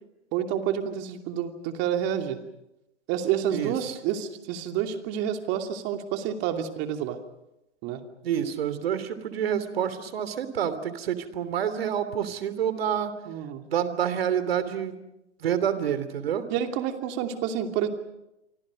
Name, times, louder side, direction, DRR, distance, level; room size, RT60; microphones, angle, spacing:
voice 1, 0.3-2.4 3.1-7.2 7.8-8.0 13.3-13.6 16.5-17.9, right 9 dB, 30° right, 5 dB, 2.7 m, -29 dB
voice 2, 3.5-4.0 8.2-13.1 13.7-15.0 15.4-16.4, right 9 dB, 60° right, 12 dB, 3.1 m, -28 dB
28.5 x 25.0 x 5.3 m, 0.89 s
hypercardioid pair, 125°, 34 cm